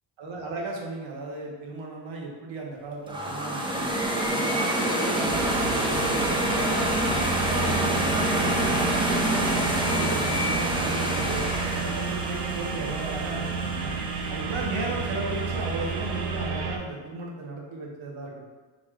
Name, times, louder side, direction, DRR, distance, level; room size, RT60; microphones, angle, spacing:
voice 1, 0.2-3.9 4.2-8.9 9.2-14.0 14.3-18.5, right 2 dB, 85° right, -2 dB, 1.1 m, -35 dB
sound 1, 3.1-14.1, right 1 dB, 10° right, 0.5 m, -27 dB
sound 2, 5.3-16.8, right 4 dB, 60° right, 0.7 m, -31 dB
4.1 x 2.3 x 4.6 m, 1.4 s
cardioid pair, 90°, 45 cm